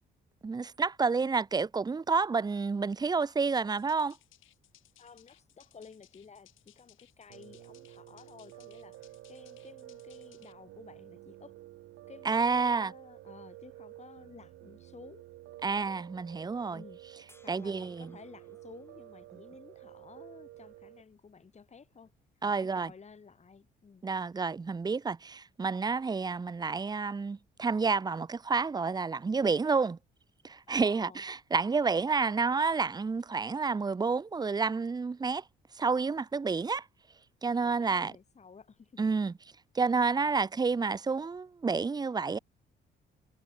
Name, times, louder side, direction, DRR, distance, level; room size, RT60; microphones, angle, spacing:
voice 1, 0.4-4.2 12.2-12.9 15.6-16.8 17.5-18.1 22.4-22.9 24.0-30.0 30.4-35.4 35.8-36.8 37.4-38.1 39.0-39.3 39.7-42.4, right 4 dB, 20° right, 0.6 m, -29 dB
sound 1, 3.7-10.5, left 14 dB, 85° left, 5.3 m, -63 dB
voice 2, 5.0-11.6 12.1-12.4 12.7-15.3 16.7-17.0 17.4-24.0 30.7-31.2 31.6-32.1 37.6-39.0, left 5 dB, 35° left, 2.1 m, -54 dB
Piano, 7.3-21.0, right 16 dB, 90° right, 3.6 m, -51 dB
sound 2, 17.3-20.5 22.6-22.7, left 2 dB, 10° left, 5.5 m, -67 dB
cardioid pair, 90°, 20 cm